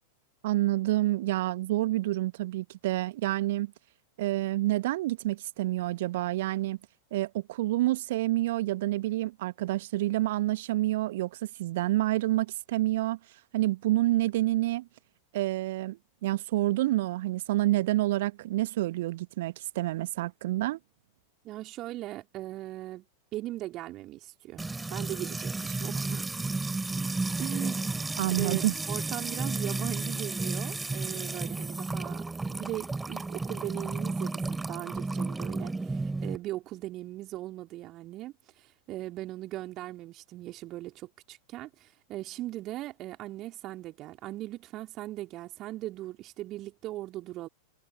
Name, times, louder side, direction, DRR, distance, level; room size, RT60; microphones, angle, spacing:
voice 1, 0.4-3.7 4.2-6.8 7.1-13.2 13.5-14.9 15.3-20.8 28.2-28.7, right 16 dB, 55° right, 1.4 m, -28 dB
voice 2, 21.4-23.0 23.3-26.3 27.4-28.6 28.9-47.5, right 15 dB, 35° right, 3.9 m, -39 dB
Music / Water tap faucet / Trickle dribble, 24.6-36.4, right 3 dB, 10° right, 3.0 m, -32 dB
figure-of-eight pair, 90°, 0 cm